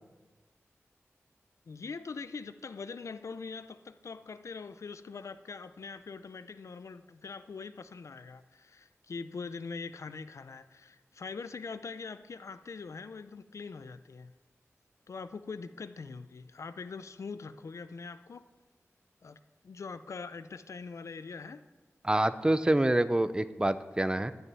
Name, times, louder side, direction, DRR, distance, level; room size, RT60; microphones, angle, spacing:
voice 1, 1.7-14.3 15.1-18.5 19.2-19.4 19.6-21.6, left 4 dB, 85° left, 12 dB, 0.6 m, -43 dB
voice 2, 22.0-24.3, right 1 dB, 20° right, 13 dB, 0.6 m, -26 dB
12.0 x 6.6 x 9.0 m, 1.2 s
wide cardioid pair, 90°, 5 cm